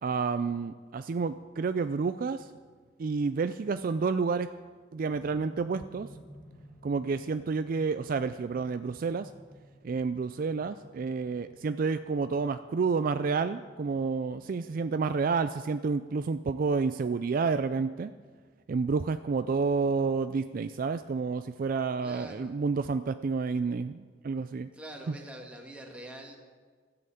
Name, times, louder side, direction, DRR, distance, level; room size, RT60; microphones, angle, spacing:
voice 1, 0.0-2.5 3.0-4.5 4.9-6.1 6.8-9.3 9.8-18.1 18.7-24.7, right 4 dB, 50° right, 10 dB, 0.4 m, -29 dB
sound 1, 5.1-17.2 18.1-18.2, equal, 65° left, 3.7 m, -54 dB
voice 2, 22.0-22.5 24.7-26.4, right 1 dB, 5° right, 0 dB, 1.9 m, -44 dB
13.0 x 7.8 x 8.5 m, 1.6 s
head